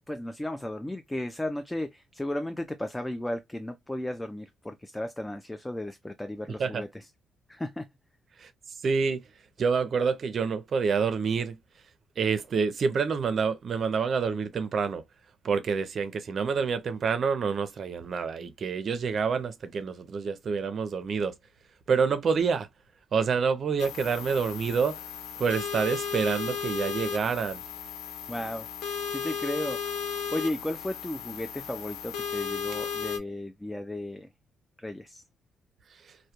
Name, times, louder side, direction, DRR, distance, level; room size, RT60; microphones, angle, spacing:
voice 1, 0.1-7.1 7.5-7.9 28.3-28.7 29.1-30.0 30.3-34.3 34.8-35.2, left 1 dB, 10° left, 0.3 m, -34 dB
voice 2, 8.8-9.2 9.6-11.6 12.2-15.0 15.4-21.3 21.9-22.7 23.1-25.0 25.4-27.6, right 5 dB, 50° right, 0.5 m, -27 dB
sound 1, 23.8-33.2, left 7 dB, 85° left, 0.5 m, -35 dB
2.2 x 2.1 x 2.8 m
cardioid pair, 90°, 0 cm